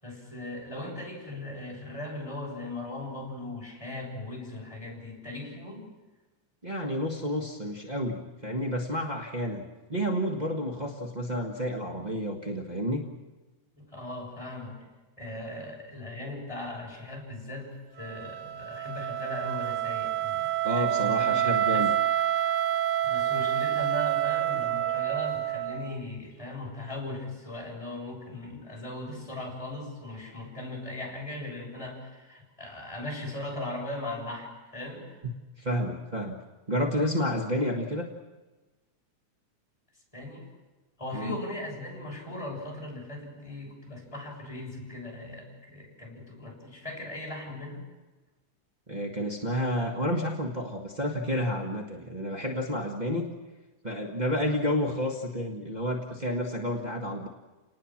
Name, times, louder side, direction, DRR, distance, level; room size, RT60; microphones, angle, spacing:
voice 1, 0.0-5.8 13.8-14.8 15.2-17.7 18.0-21.9 23.0-35.2 40.1-40.5 41.0-47.9, left 2 dB, 10° left, -1 dB, 6.7 m, -38 dB
voice 2, 6.6-13.0 20.6-21.9 35.6-36.4 36.7-38.1 41.1-41.4 48.9-53.3 53.8-57.3, equal, 25° right, 1 dB, 0.8 m, -30 dB
Wind instrument woodwind instrument, 18.0-26.0, right 11 dB, 85° right, 2.8 m, -28 dB
29.5 x 19.5 x 7.4 m, 1.2 s
omnidirectional pair, 3.6 m